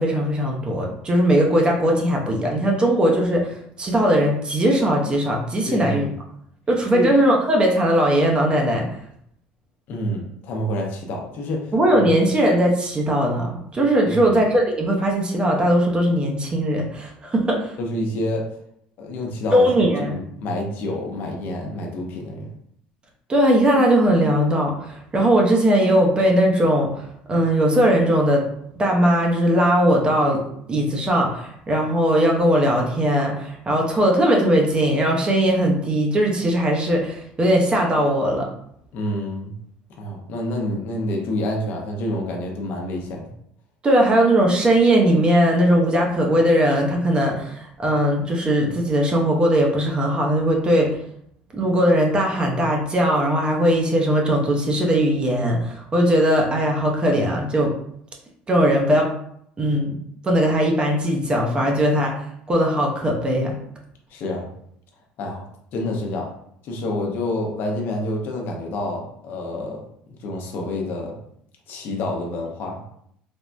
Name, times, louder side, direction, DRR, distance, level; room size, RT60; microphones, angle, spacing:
voice 1, 0.0-6.1 6.7-8.9 11.7-17.7 19.5-20.2 23.3-28.4 28.8-30.4 30.7-38.5 43.8-51.0 51.5-57.7 58.5-59.1 59.6-60.0 60.2-62.2 62.5-63.5, equal, 25° right, 0 dB, 0.7 m, -19 dB
voice 2, 5.7-6.1 6.9-7.1 9.9-11.7 14.0-14.4 17.8-18.4 19.0-22.5 38.9-39.6 40.0-43.3 64.1-64.5 65.2-65.4 65.7-66.3 66.6-69.8 70.2-71.1 71.7-72.8, left 1 dB, 60° left, 1 dB, 0.7 m, -28 dB
3.4 x 2.1 x 2.5 m, 0.70 s
supercardioid pair, 100°, 4 cm